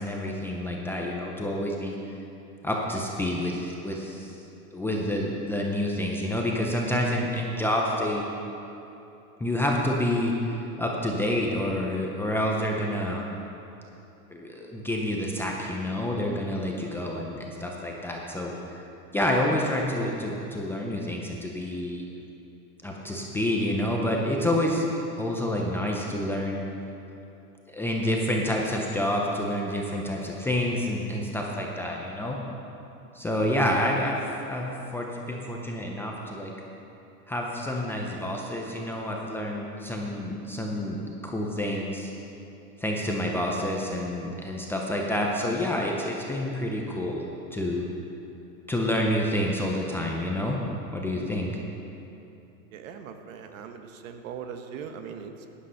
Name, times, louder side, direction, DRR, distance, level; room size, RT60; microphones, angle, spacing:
voice 1, 0.0-1.9 2.6-4.4 4.7-8.3 9.4-13.2 14.3-18.8 19.1-22.0 22.8-24.9 25.2-26.7 27.7-32.4 33.1-34.2 34.5-36.5 37.3-42.1 42.8-47.2 47.5-47.8 48.7-50.6 50.9-51.5, left 1 dB, 5° left, -2 dB, 0.6 m, -28 dB
voice 2, 52.7-55.5, right 7 dB, 60° right, 6 dB, 1.2 m, -40 dB
11.5 x 10.0 x 5.6 m, 2.8 s
supercardioid pair, 145°, 44 cm